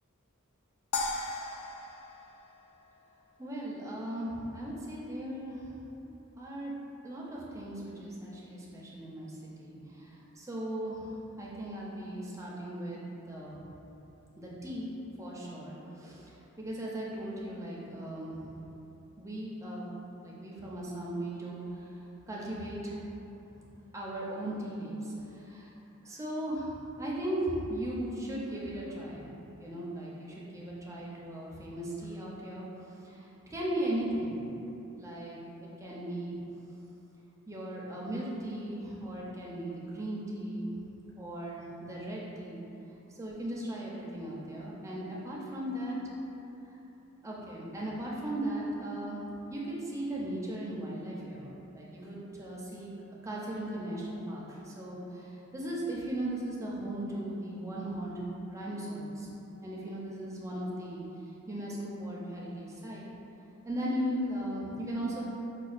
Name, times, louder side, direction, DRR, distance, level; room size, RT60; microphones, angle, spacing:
sound 1, 0.9-3.3, left 3 dB, 85° left, 0.4 m, -37 dB
voice 1, 3.4-5.7 6.4-6.7 7.0-13.0 13.3-13.6 14.4-14.9 15.2-18.5 19.2-19.8 20.2-21.6 22.3-23.0 23.9-25.7 26.0-29.3 29.6-34.4 35.0-35.4 35.8-36.4 37.5-40.7 41.2-42.6 43.1-46.0 47.2-49.2 49.5-52.9 53.2-58.1 58.5-59.3 59.6-61.0 61.5-63.1 63.6-65.2, right 1 dB, 15° right, -5 dB, 0.5 m, -37 dB
5.1 x 2.2 x 2.4 m, 2.9 s
head